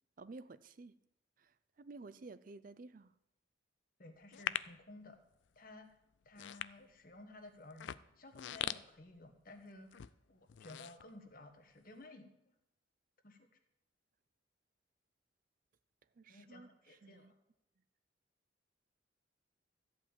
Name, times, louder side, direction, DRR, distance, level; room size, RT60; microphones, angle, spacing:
voice 1, 0.2-1.0 1.4-3.1 16.2-17.3, right 3 dB, 45° right, 0.4 m, -53 dB
voice 2, 4.0-5.2 5.5-5.9 6.2-12.5 13.2-13.5 16.3-17.3, left 2 dB, 45° left, 1.4 m, -55 dB
sound 1, 4.3-4.8 5.5-5.7 6.2-7.2 7.7-9.6 9.9-10.1 10.5-11.6 12.0-12.1, left 10 dB, 70° left, 0.4 m, -42 dB
14.0 x 5.4 x 8.9 m
head